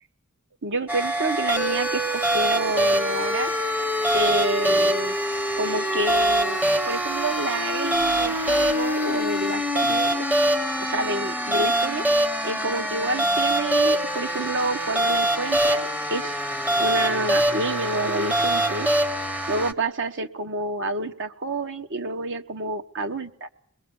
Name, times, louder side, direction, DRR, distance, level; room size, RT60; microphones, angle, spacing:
voice 1, 0.6-3.5 4.1-5.2 5.6-6.6 6.8-10.3 10.8-12.1 12.4-16.4 16.8-18.9 19.5-23.5, right 2 dB, 60° right, 8 dB, 1.3 m, -28 dB
sound 1, 0.9-19.7, right 1 dB, 5° right, 0.9 m, -24 dB
23.5 x 21.0 x 7.1 m, 0.64 s
head